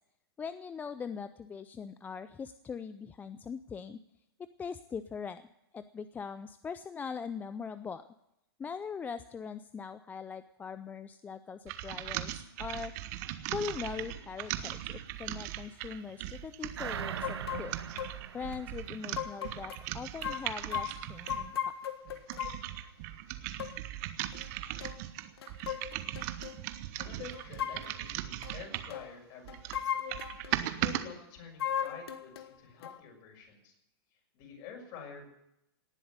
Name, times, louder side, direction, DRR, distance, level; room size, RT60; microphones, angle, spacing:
voice 1, 0.4-4.0 4.6-5.4 5.7-8.1 8.6-12.9 13.5-17.7 18.3-21.7, left 6 dB, 15° left, 12 dB, 0.5 m, -41 dB
sound 1, 11.7-21.5 22.1-29.0 29.4-31.0, right 14 dB, 45° right, 1.2 m, -39 dB
sound 2, 16.8-19.7 20.0-20.1, right 8 dB, 85° right, 1.0 m, -41 dB
sound 3, 17.2-17.7 18.0-18.1 18.5-18.6 19.2-19.8 20.2-22.7 23.6-23.8 24.3-24.5 24.8-25.0 25.4-26.6 27.3-28.0 28.4-28.6 28.9-29.1 29.5-30.6 31.6-32.5 32.8-33.0, left 9 dB, 75° left, 1.5 m, -37 dB
voice 2, 27.0-29.8 30.6-33.7 34.3-35.3, left 6 dB, 40° left, 2 dB, 6.2 m, -48 dB
18.5 x 7.9 x 9.4 m, 0.83 s
hypercardioid pair, 135°, 13 cm